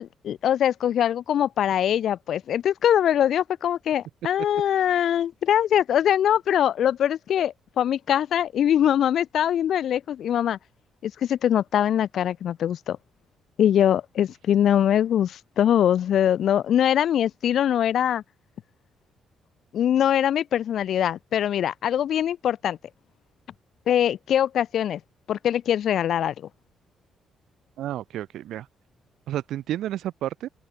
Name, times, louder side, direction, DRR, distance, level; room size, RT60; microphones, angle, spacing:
voice 1, 0.0-10.6 11.0-13.0 13.6-18.2 19.7-22.8 23.9-25.0 25.3-26.5, left 10 dB, 65° left, 2.2 m, -22 dB
voice 2, 27.8-28.7 29.3-30.5, right 12 dB, 80° right, 1.0 m, -31 dB
open air
cardioid pair, 90°, 0 cm